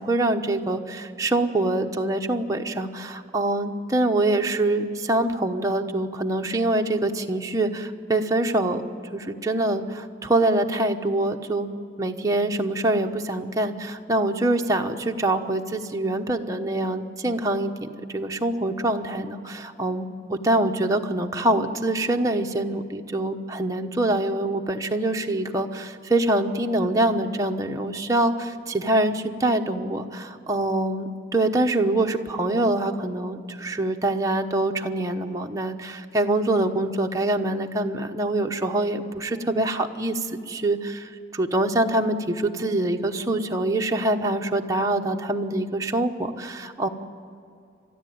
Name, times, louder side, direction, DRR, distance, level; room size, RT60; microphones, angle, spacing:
voice 1, 0.0-8.8 9.1-11.7 12.0-46.9, right 2 dB, 20° right, 2 dB, 1.0 m, -25 dB
29.5 x 13.0 x 9.4 m, 2.4 s
head